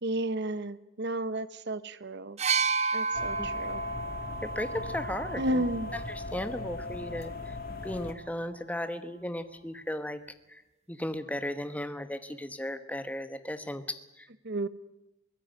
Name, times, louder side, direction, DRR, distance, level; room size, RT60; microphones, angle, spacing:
voice 1, 0.0-2.4 2.9-3.8 5.4-5.9 14.4-14.7, right 1 dB, 55° right, 14 dB, 1.0 m, -32 dB
sound 1, 2.4-6.2 7.2-7.4, right 5 dB, 30° right, 0.9 m, -32 dB
sound 2, 3.1-8.1, left 2 dB, 45° left, 2.2 m, -38 dB
voice 2, 4.4-5.6 5.9-7.6 7.8-10.2 10.5-10.6 10.9-14.3, left 1 dB, 5° left, 10 dB, 1.2 m, -36 dB
23.5 x 16.0 x 9.0 m, 0.92 s
head